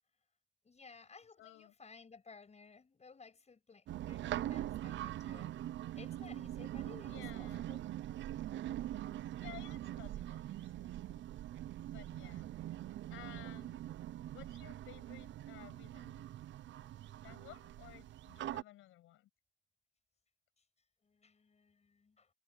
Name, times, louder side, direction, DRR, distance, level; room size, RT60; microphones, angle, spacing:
voice 1, 0.6-5.5 5.9-7.8 21.0-22.3, left 4 dB, 35° left, 6.2 m, -57 dB
voice 2, 1.4-1.7 7.0-7.7 9.4-11.2 11.9-12.5 13.1-13.8 14.3-16.2 17.2-19.3, left 15 dB, 90° left, 7.7 m, -56 dB
sound 1, 3.9-18.6, right 13 dB, 70° right, 0.6 m, -43 dB
cardioid pair, 90°, 20 cm